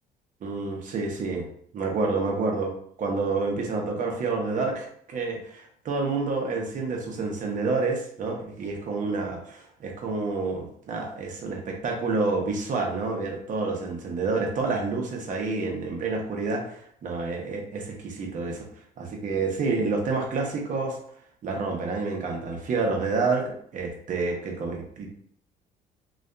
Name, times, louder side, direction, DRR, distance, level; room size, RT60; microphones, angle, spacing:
voice 1, 0.4-1.5 1.7-9.4 9.8-18.7 19.0-21.0 21.4-25.1, right 3 dB, 50° right, 1 dB, 0.7 m, -28 dB
2.6 x 2.3 x 2.2 m, 0.63 s
cardioid pair, 110°, 17 cm